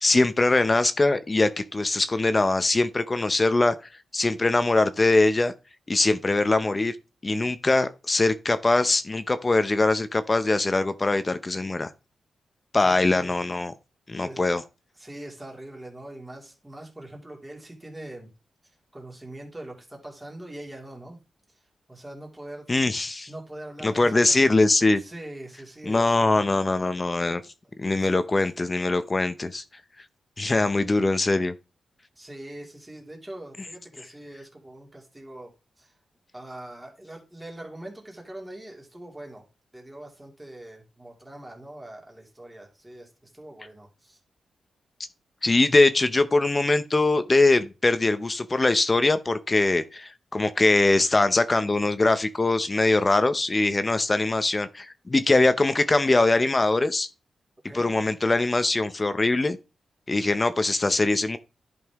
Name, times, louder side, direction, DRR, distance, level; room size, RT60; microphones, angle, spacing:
voice 1, 0.0-3.8 4.1-5.5 5.9-6.9 7.2-11.9 12.7-13.7 14.1-14.6 22.7-23.3 23.8-25.0 25.9-27.4 27.8-29.6 30.4-31.5 45.4-57.1 57.7-59.6 60.1-61.4, left 2 dB, 25° left, 0.6 m, -22 dB
voice 2, 12.8-13.3 14.2-14.5 15.0-18.3 18.9-21.2 21.5-21.6 21.9-22.7 23.3-24.5 25.0-26.5 26.8-26.9 28.0-28.5 32.2-35.9 36.3-39.5 39.7-44.2 57.7-57.9, right 1 dB, 10° right, 2.5 m, -42 dB
11.0 x 5.4 x 3.5 m
wide cardioid pair, 115°, 0 cm